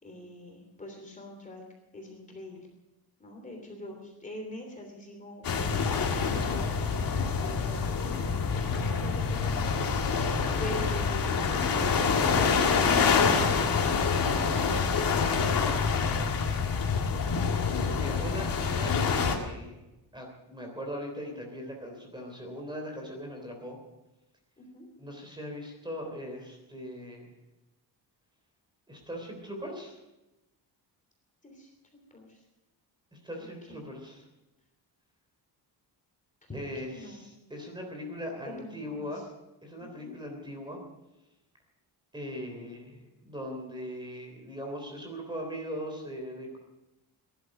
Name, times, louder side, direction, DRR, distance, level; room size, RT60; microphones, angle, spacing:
voice 1, 0.0-1.6 1.9-2.7 3.2-5.7 6.3-8.2 8.5-10.1 10.6-11.7 24.6-24.9 31.4-31.7 32.1-32.4 33.7-33.8 36.5-37.2 38.5-39.1 39.8-40.1, left 1 dB, 20° left, 1 dB, 3.1 m, -43 dB
sound 1, 5.4-19.4, left 5 dB, 55° left, 2.1 m, -26 dB
voice 2, 17.9-19.8 20.1-23.8 25.0-27.3 28.9-30.0 33.1-34.2 36.5-39.2 39.6-40.8 42.1-46.6, equal, 10° right, 2 dB, 3.3 m, -40 dB
18.0 x 11.5 x 6.5 m, 1.0 s
wide cardioid pair, 170°, 41 cm